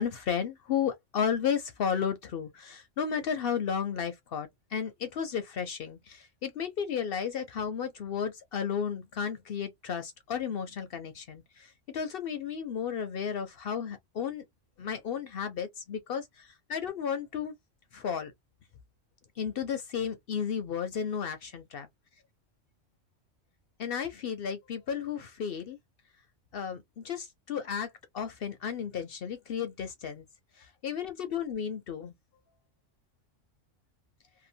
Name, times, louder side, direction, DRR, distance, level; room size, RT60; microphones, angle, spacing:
voice 1, 0.0-14.4 14.8-17.6 17.9-18.3 19.4-21.9 23.8-25.8 26.5-30.3 30.6-32.1, left 7 dB, 60° left, 0.6 m, -33 dB
2.8 x 2.2 x 2.6 m
omnidirectional pair, 1.3 m